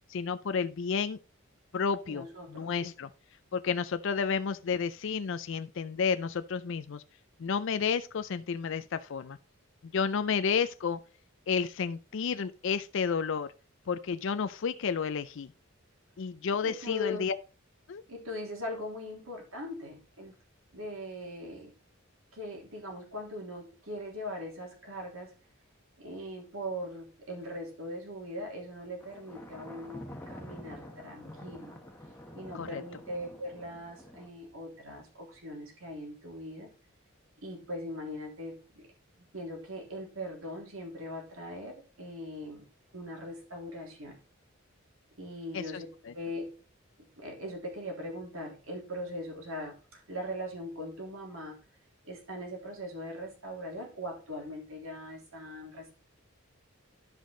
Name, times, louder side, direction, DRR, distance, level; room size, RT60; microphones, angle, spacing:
voice 1, 0.1-1.2 1.7-3.1 3.5-7.0 7.4-9.4 9.9-11.0 11.5-13.5 13.9-15.5 16.2-17.3 17.9-18.0 32.5-32.8 45.5-45.6, left 6 dB, 65° left, 0.4 m, -31 dB
voice 2, 2.1-2.7 16.6-17.3 18.1-20.3 20.7-21.7 22.3-25.3 26.0-31.8 32.3-36.7 37.4-38.9 39.3-42.6 42.9-44.2 45.2-45.9 46.1-46.5 47.2-51.6 52.0-55.9, left 1 dB, 85° right, 3.2 m, -40 dB
Thunder, 29.0-34.3, left 1 dB, 10° left, 1.1 m, -47 dB
12.0 x 5.3 x 3.7 m
head